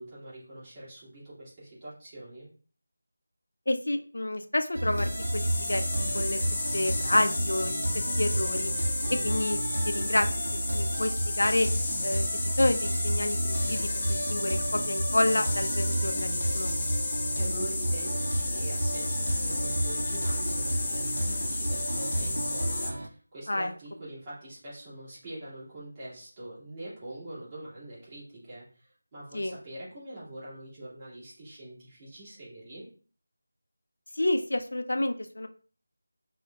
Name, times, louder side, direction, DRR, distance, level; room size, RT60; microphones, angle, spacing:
voice 1, 0.0-2.5 17.4-32.9, right 1 dB, 20° right, -9 dB, 1.7 m, -43 dB
voice 2, 3.7-5.8 6.1-6.4 6.7-7.8 8.2-8.7 9.2-9.6 9.9-10.3 10.7-11.7 12.0-13.8 14.1-16.7 23.5-23.7 29.3-29.5 34.2-35.5, left 1 dB, 75° left, 7 dB, 0.4 m, -29 dB
sound 1, 4.7-23.1, right 1 dB, 75° right, 0.5 m, -31 dB
sound 2, 4.9-22.9, left 2 dB, 15° left, 0.4 m, -33 dB
5.8 x 2.1 x 2.3 m, 0.41 s
figure-of-eight pair, 170°, 0 cm